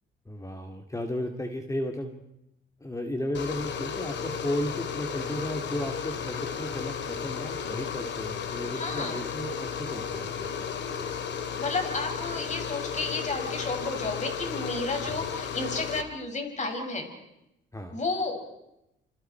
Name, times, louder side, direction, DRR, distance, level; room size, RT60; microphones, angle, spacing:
voice 1, 0.3-2.2 2.8-10.7 11.0-11.1 15.1-15.3 17.7-18.0, left 1 dB, 15° left, 4 dB, 2.6 m, -34 dB
sound 1, 3.3-16.0, left 7 dB, 65° left, 2.8 m, -34 dB
voice 2, 8.7-9.2 11.6-17.1 17.9-18.4, left 3 dB, 35° left, 4 dB, 6.8 m, -32 dB
28.0 x 27.0 x 4.6 m, 0.86 s
cardioid pair, 90°, 20 cm